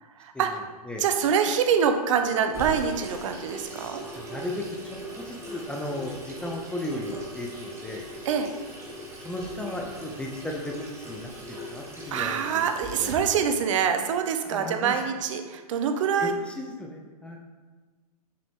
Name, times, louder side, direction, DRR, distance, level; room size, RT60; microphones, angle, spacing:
voice 1, 1.0-4.0 8.3-8.5 12.1-16.3, right 7 dB, 50° right, 7 dB, 0.7 m, -25 dB
Water tap faucet / Sink (filling or washing), 2.5-13.2, right 1 dB, 15° right, 1.3 m, -40 dB
voice 2, 3.7-8.0 9.2-13.1 14.4-15.1 16.2-17.4, left 1 dB, 5° left, 0 dB, 0.6 m, -36 dB
6.9 x 5.0 x 3.5 m, 1.4 s
hypercardioid pair, 120°, 20 cm